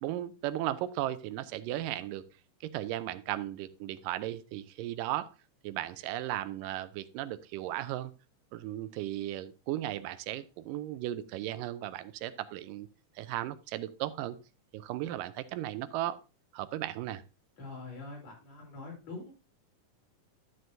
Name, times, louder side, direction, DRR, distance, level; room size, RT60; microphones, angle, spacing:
voice 1, 0.0-2.2 2.6-5.3 5.6-8.1 8.5-12.9 13.2-14.4 14.7-16.2 16.5-17.2, right 14 dB, 85° right, 14 dB, 2.2 m, -36 dB
voice 2, 17.6-19.3, left 3 dB, 55° left, -3 dB, 4.7 m, -44 dB
11.0 x 7.8 x 2.7 m, 0.31 s
omnidirectional pair, 3.8 m